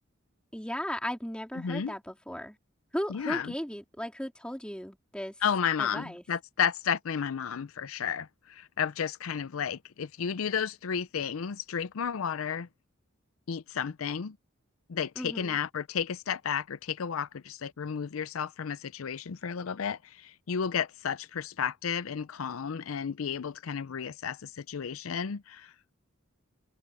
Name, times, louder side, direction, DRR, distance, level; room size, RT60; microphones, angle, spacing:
voice 1, 0.5-2.6 2.9-5.3 5.8-6.2 15.2-15.6, equal, 5° left, 3.7 m, -36 dB
voice 2, 1.6-1.9 3.1-3.5 5.4-12.7 13.5-14.4 14.9-25.7, left 7 dB, 90° left, 0.5 m, -32 dB
head